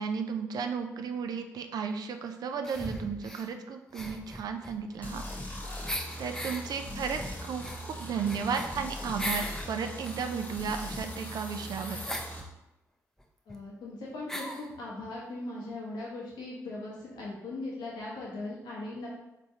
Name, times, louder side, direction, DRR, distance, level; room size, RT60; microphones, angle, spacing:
voice 1, 0.0-5.2 6.2-12.0, right 6 dB, 70° right, 6 dB, 0.4 m, -34 dB
sound 1, 2.6-3.5 3.9-5.5 5.9-6.6 7.1-9.6 10.0-12.3 13.2-13.3 13.5-13.6 14.3-14.7, equal, 5° left, 0.5 m, -39 dB
sound 2, 5.0-12.4, equal, 25° left, 1.1 m, -40 dB
voice 2, 13.5-19.1, left 2 dB, 75° left, -5 dB, 1.0 m, -39 dB
3.4 x 3.0 x 2.7 m, 0.93 s
supercardioid pair, 45°, 7 cm